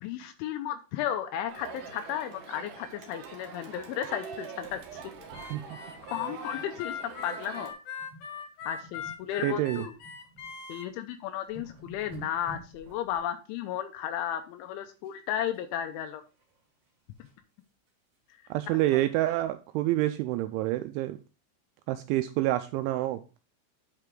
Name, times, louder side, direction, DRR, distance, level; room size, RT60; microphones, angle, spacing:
voice 1, 0.0-4.8 6.1-6.9 7.2-7.7 8.6-9.9 10.7-16.2, left 10 dB, 85° left, 7 dB, 2.9 m, -34 dB
Crowd, 1.5-7.7, right 5 dB, 70° right, 2.1 m, -44 dB
sound 1, 4.6-7.0 7.3-7.5 8.0-8.3 8.6-10.5 11.0-11.1 11.3-13.2 15.0-15.6 16.0-17.4 17.9-18.0 18.3-18.4 18.8-18.9, right 2 dB, 40° right, 2.5 m, -50 dB
Harmonica, 5.3-10.9, left 7 dB, 65° left, 2.6 m, -41 dB
voice 2, 9.4-9.9 18.5-21.2 21.9-23.2, right 15 dB, 85° right, 9 dB, 2.7 m, -27 dB
9.0 x 5.7 x 3.7 m, 0.32 s
omnidirectional pair, 5.8 m